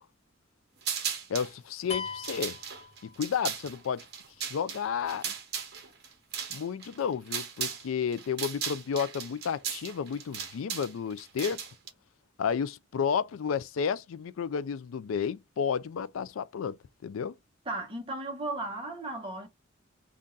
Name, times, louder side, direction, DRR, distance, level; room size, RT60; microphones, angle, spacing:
sound 1, 0.8-1.5 2.1-7.9 8.1-11.9, right 7 dB, 55° right, 1.1 m, -36 dB
voice 1, 1.3-2.6 3.0-4.0 4.5-5.3 6.5-11.6 12.4-16.8 17.0-17.3, left 7 dB, 80° left, 0.4 m, -32 dB
sound 2, 1.9-3.6, left 5 dB, 30° left, 0.9 m, -39 dB
voice 2, 17.7-19.5, right 2 dB, 25° right, 1.1 m, -35 dB
3.8 x 2.4 x 3.9 m
head